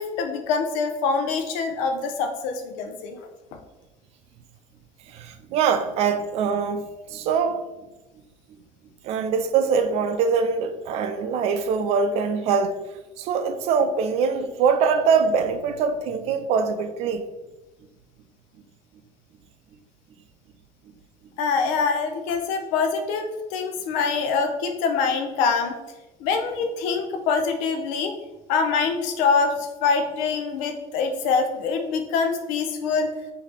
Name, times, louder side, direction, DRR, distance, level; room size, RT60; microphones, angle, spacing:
voice 1, 0.0-3.2 21.4-25.8 26.2-28.1 28.5-33.1, left 5 dB, 85° left, 0.7 m, -24 dB
voice 2, 5.1-6.9 7.1-7.6 9.0-12.8 13.2-17.2, right 5 dB, 55° right, 0.5 m, -23 dB
4.9 x 2.8 x 3.3 m
cardioid pair, 165°, 12 cm